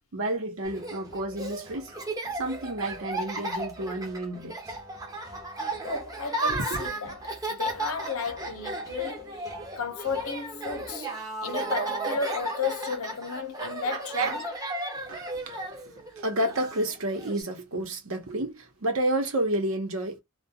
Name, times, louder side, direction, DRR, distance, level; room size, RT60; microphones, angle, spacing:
voice 1, 0.1-1.9 2.3-4.8 6.5-6.9 14.0-14.4 14.9-20.2, right 1 dB, 70° right, 0.9 m, -30 dB
Laughter, 0.6-17.4, right 2 dB, 15° right, 0.6 m, -35 dB
voice 2, 5.8-7.2 7.5-9.5 9.8-11.1 11.4-14.4, left 4 dB, 75° left, 0.7 m, -33 dB
2.3 x 2.2 x 2.7 m
head